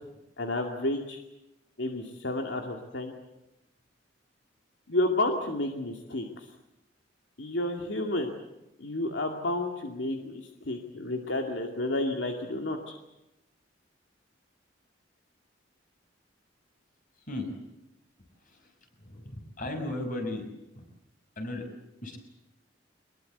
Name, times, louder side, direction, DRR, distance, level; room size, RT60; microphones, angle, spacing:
voice 1, 0.4-1.2 1.8-3.1 4.9-6.3 7.4-8.3 8.8-10.4 10.7-12.9, left 1 dB, 80° left, 3 dB, 2.4 m, -30 dB
voice 2, 19.6-20.4 21.4-21.7 22.0-22.2, left 1 dB, 45° left, 5 dB, 6.1 m, -34 dB
24.0 x 21.5 x 8.1 m, 0.92 s
head